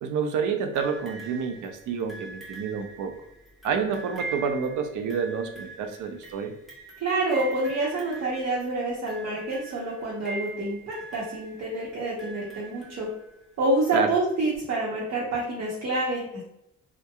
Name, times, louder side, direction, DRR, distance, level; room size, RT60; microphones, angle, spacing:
voice 1, 0.0-3.1 3.6-6.5 13.9-14.1, right 6 dB, 75° right, 6 dB, 0.5 m, -28 dB
sound 1, 0.7-13.6 14.5-14.6, right 3 dB, ahead, 0.9 m, -43 dB
voice 2, 7.0-13.1 13.6-16.4, right 2 dB, 60° right, -5 dB, 0.9 m, -27 dB
2.8 x 2.2 x 2.3 m, 0.81 s
cardioid pair, 90°, 30 cm